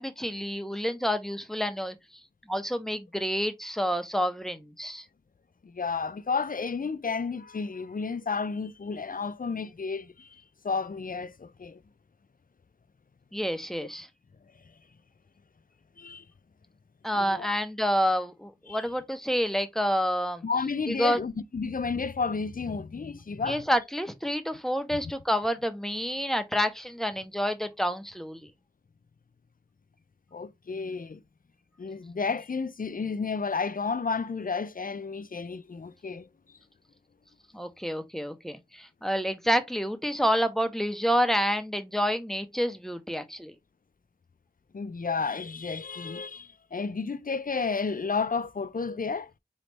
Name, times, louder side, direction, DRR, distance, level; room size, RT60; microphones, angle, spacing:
voice 1, 0.0-2.0 2.5-5.0 13.3-14.1 17.0-20.4 20.9-21.2 23.5-28.5 37.5-43.5, equal, ahead, 0.7 m, -28 dB
voice 2, 5.6-11.8 16.0-16.2 17.2-17.5 18.7-18.8 20.4-23.6 24.9-25.0 30.3-31.2 31.8-36.3 44.7-49.3, left 4 dB, 60° left, 0.5 m, -32 dB
4.1 x 3.1 x 3.3 m
wide cardioid pair, 45°, 16 cm